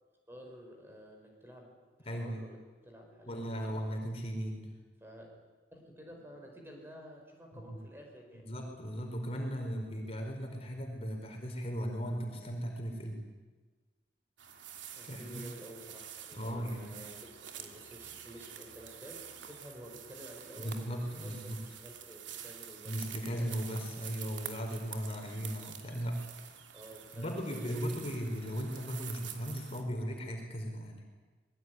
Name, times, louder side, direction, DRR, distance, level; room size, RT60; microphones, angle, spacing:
voice 1, 0.3-3.8 5.0-5.3 5.7-8.5 15.0-23.3 26.7-27.9, equal, 15° right, 1 dB, 5.6 m, -51 dB
voice 2, 2.0-2.4 3.3-4.7 7.7-7.8 8.3-13.2 15.0-15.4 16.3-17.0 20.6-21.6 22.8-26.2 27.2-31.0, equal, 35° left, 2 dB, 4.7 m, -37 dB
sound 1, 14.4-29.8, right 9 dB, 85° right, 2.9 m, -48 dB
25.5 x 21.0 x 9.7 m, 1.3 s
head